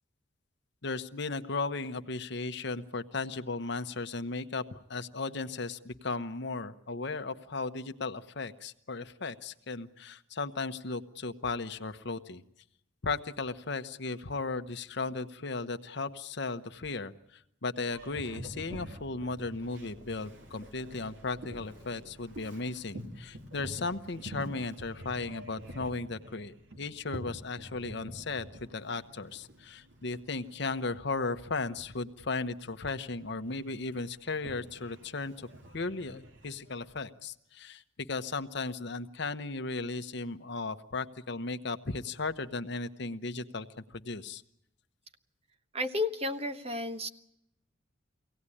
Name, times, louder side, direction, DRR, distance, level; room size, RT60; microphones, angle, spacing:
voice 1, 0.8-12.4 13.0-35.5 35.7-37.8 38.1-43.7 43.9-44.4, left 3 dB, 60° left, 10 dB, 0.9 m, -36 dB
Boat Water vehicle, 17.9-36.9, equal, 65° right, 2.3 m, -48 dB
voice 2, 45.7-47.1, left 2 dB, 30° right, 7 dB, 1.1 m, -32 dB
24.0 x 17.5 x 9.8 m, 0.80 s
head